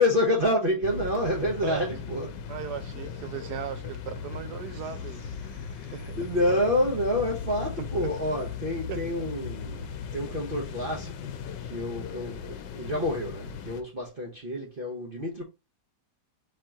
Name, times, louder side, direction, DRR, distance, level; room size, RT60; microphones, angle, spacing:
voice 1, 0.0-2.3 5.4-11.3 11.6-15.4, left 1 dB, 40° right, 0.9 m, -28 dB
sound 1, 0.8-13.8, left 6 dB, 85° left, 1.2 m, -38 dB
voice 2, 2.5-5.2 5.9-6.3 8.0-8.1 8.9-9.2, right 9 dB, 70° right, 1.3 m, -37 dB
4.6 x 3.0 x 3.6 m
omnidirectional pair, 1.8 m